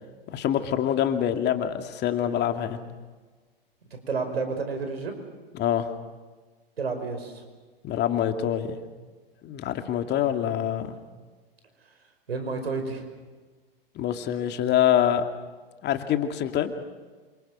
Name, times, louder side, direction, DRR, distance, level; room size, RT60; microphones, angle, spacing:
voice 1, 0.3-2.8 5.5-5.9 7.8-8.8 9.4-11.0 13.9-15.2 15.8-16.7, left 10 dB, 35° left, 7 dB, 2.5 m, -25 dB
voice 2, 3.9-5.2 6.8-7.4 12.3-13.0, right 4 dB, 85° right, 7 dB, 5.6 m, -30 dB
28.0 x 26.5 x 6.5 m, 1.4 s
hypercardioid pair, 105°, 30 cm